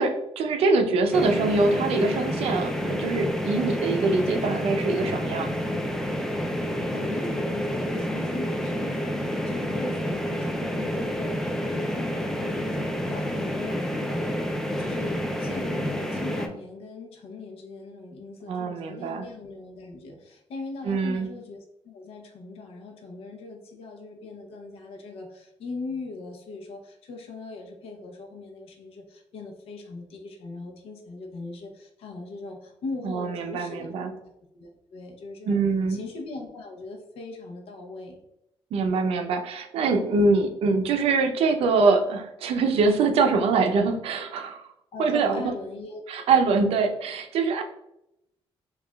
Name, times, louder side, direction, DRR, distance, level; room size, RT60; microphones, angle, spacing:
voice 1, 0.0-5.5 18.5-19.3 20.8-21.3 33.0-34.1 35.5-36.0 38.7-44.7 45.0-45.4 46.1-47.6, right 4 dB, 75° right, 5 dB, 0.5 m, -24 dB
sound 1, 1.1-16.5, equal, 5° left, 0.3 m, -29 dB
voice 2, 6.6-14.4 14.8-35.6 35.9-38.2 44.9-46.5, left 3 dB, 75° left, 3 dB, 0.6 m, -40 dB
4.8 x 2.4 x 2.2 m, 0.84 s
cardioid pair, 155°, 10 cm